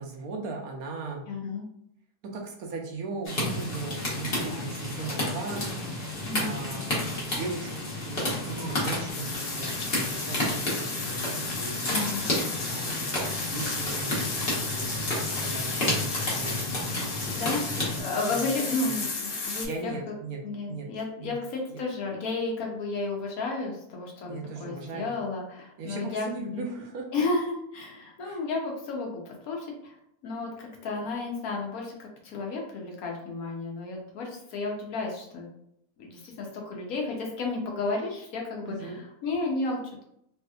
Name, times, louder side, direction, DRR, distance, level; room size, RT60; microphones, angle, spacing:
voice 1, 0.0-1.2 2.3-5.7 6.3-7.7 8.0-11.3 11.6-12.0 12.7-14.9 15.3-16.9 18.1-18.6 18.8-18.9 19.6-20.4 20.7-20.9 21.2-21.3 21.7-21.8 24.3-25.1 25.8-27.2 28.2-28.4 38.7-39.0, right 3 dB, 70° right, 1 dB, 1.0 m, -38 dB
voice 2, 1.3-1.7 6.2-6.5 11.8-12.3 17.0-20.1 20.4-26.7 27.1-30.0 30.2-35.5 36.0-40.0, left 3 dB, 65° left, 0 dB, 1.1 m, -32 dB
sound 1, 3.2-18.0, left 1 dB, 40° left, 1.1 m, -31 dB
sound 2, 9.1-19.7, left 3 dB, 85° left, 1.3 m, -34 dB
3.3 x 2.8 x 2.3 m, 0.74 s
omnidirectional pair, 1.7 m